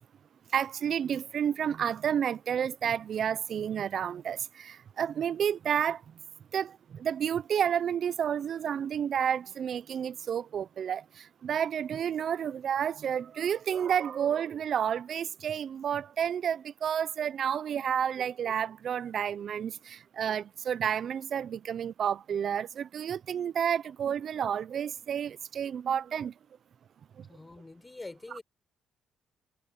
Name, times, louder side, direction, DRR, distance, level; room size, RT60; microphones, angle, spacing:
voice 1, 0.5-6.1 6.5-26.3 27.2-27.3 28.3-28.4, right 8 dB, 60° right, 0.6 m, -30 dB
voice 2, 27.3-28.4, left 2 dB, 20° left, 6.3 m, -45 dB
cardioid pair, 90°, 0 cm